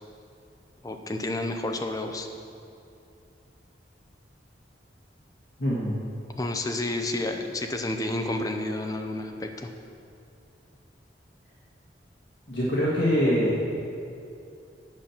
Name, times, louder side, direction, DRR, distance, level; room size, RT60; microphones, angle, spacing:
voice 1, 0.8-2.3 6.4-9.7, left 2 dB, 20° left, 4 dB, 0.6 m, -30 dB
voice 2, 5.6-6.0 12.5-13.6, equal, 65° left, -8 dB, 1.7 m, -24 dB
9.0 x 5.9 x 7.1 m, 2.5 s
head